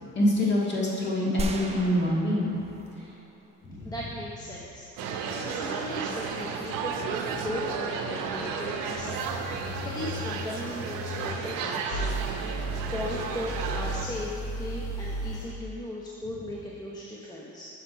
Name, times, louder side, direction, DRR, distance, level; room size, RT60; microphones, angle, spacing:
voice 1, 0.2-2.5 3.6-3.9, left 1 dB, 35° left, -5 dB, 1.8 m, -25 dB
sound 1, 1.4-3.7, right 2 dB, 20° right, 0.5 m, -36 dB
voice 2, 3.8-12.6 12.9-14.3 14.6-17.7, left 1 dB, 10° left, -5 dB, 0.8 m, -37 dB
sound 2, 5.0-14.1, right 5 dB, 85° right, 0.7 m, -33 dB
sound 3, 9.0-11.3 11.9-15.4, right 1 dB, 90° left, 1.7 m, -35 dB
6.5 x 6.1 x 4.5 m, 2.7 s
cardioid pair, 120°, 32 cm